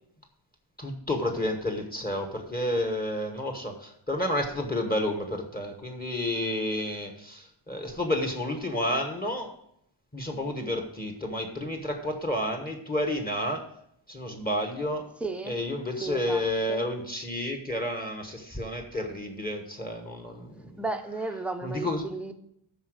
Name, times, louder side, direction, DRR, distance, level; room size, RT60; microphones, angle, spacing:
voice 1, 0.8-9.5 10.1-13.7 14.1-15.1 15.5-20.8 21.6-22.1, left 1 dB, 20° left, 3 dB, 1.2 m, -30 dB
voice 2, 15.2-15.6 16.0-16.4 16.7-16.8 20.8-22.3, right 3 dB, 5° right, 5 dB, 0.6 m, -34 dB
12.5 x 4.4 x 6.4 m, 0.73 s
wide cardioid pair, 170°, 50 cm